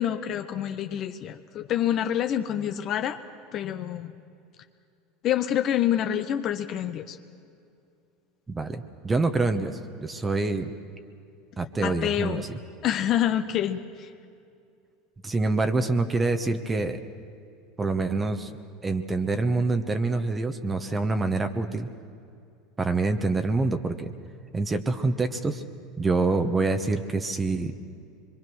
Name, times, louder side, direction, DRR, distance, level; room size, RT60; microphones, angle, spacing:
voice 1, 0.0-3.2 3.5-4.1 5.2-7.2 11.8-12.4 12.8-14.1, left 11 dB, 50° left, 8 dB, 0.9 m, -27 dB
voice 2, 8.5-10.7 11.6-12.6 15.2-17.0 17.8-18.5 18.8-21.9 22.8-24.1 24.5-25.6 26.0-27.7, right 3 dB, 20° right, 7 dB, 1.2 m, -26 dB
24.0 x 23.0 x 6.3 m, 2.5 s
hypercardioid pair, 90°, 0 cm